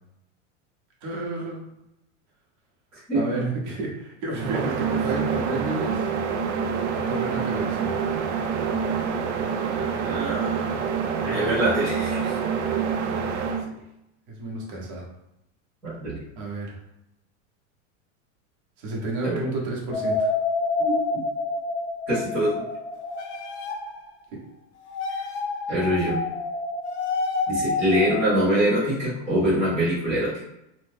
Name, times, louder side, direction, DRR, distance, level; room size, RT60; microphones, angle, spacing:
voice 1, 1.0-1.6 3.1-6.1 6.9-7.9 13.6-13.7 14.3-15.1 16.4-16.8 18.8-20.3, right 2 dB, 40° right, -2 dB, 0.9 m, -31 dB
voice 2, 2.9-3.4 9.4-10.7 11.2-12.4 15.8-16.2 19.2-19.4 20.8-21.2 22.1-22.7 25.7-26.2 27.5-30.4, equal, 5° right, -16 dB, 0.3 m, -25 dB
sound 1, 4.3-13.6, right 6 dB, 60° right, 0.5 m, -26 dB
sound 2, 19.9-24.1 24.9-28.5, left 3 dB, 60° left, 0.5 m, -28 dB
2.9 x 2.1 x 3.4 m, 0.85 s
supercardioid pair, 175°, 39 cm